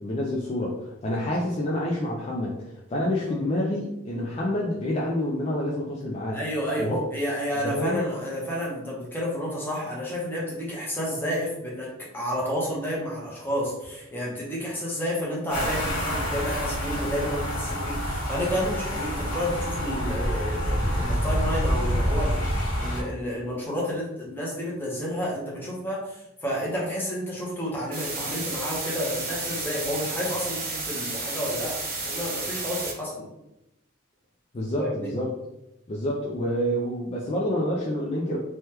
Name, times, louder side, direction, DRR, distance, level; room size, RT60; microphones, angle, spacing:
voice 1, 0.0-6.4 6.8-7.1 7.6-8.1 34.5-35.3 35.9-38.4, left 1 dB, 30° left, -4 dB, 0.3 m, -28 dB
voice 2, 6.3-22.4 22.8-33.3 34.8-35.1, equal, 10° left, -5 dB, 0.8 m, -30 dB
sound 1, 15.5-23.0, equal, 85° left, 1.2 m, -27 dB
sound 2, 27.9-32.9, right 3 dB, 45° right, 0.7 m, -32 dB
3.3 x 2.2 x 2.9 m, 0.90 s
head